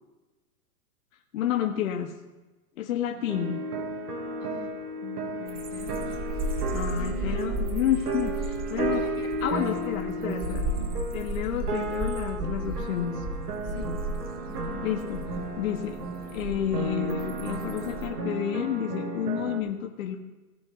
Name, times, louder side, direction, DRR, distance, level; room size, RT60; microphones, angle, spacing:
voice 1, 1.3-2.1 2.8-3.7 6.7-9.0 9.4-10.6 11.1-13.2 14.8-15.2 15.6-16.0 16.3-20.2, left 10 dB, 60° left, 3 dB, 1.2 m, -30 dB
sound 1, 3.3-19.6, right 2 dB, 90° right, 2.2 m, -33 dB
voice 2, 5.0-6.2 6.9-7.5 8.8-9.8 10.2-11.0 13.6-14.0 14.5-14.9 15.3-15.5, left 5 dB, 85° left, 6 dB, 2.0 m, -43 dB
sound 2, 5.5-18.1, right 1 dB, 20° right, 1.4 m, -35 dB
17.5 x 6.1 x 3.9 m, 1.2 s
hypercardioid pair, 130°, 45 cm